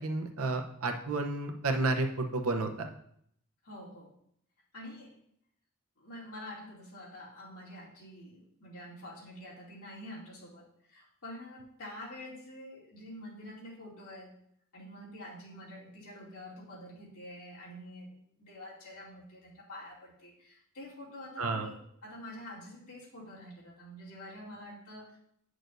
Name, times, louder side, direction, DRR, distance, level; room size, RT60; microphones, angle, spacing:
voice 1, 0.0-2.9 21.4-21.7, right 3 dB, 75° right, 5 dB, 0.8 m, -31 dB
voice 2, 3.6-4.1 4.7-5.2 6.0-14.4 14.7-25.2, left 1 dB, 75° left, -5 dB, 2.6 m, -47 dB
9.2 x 6.3 x 2.6 m, 0.69 s
head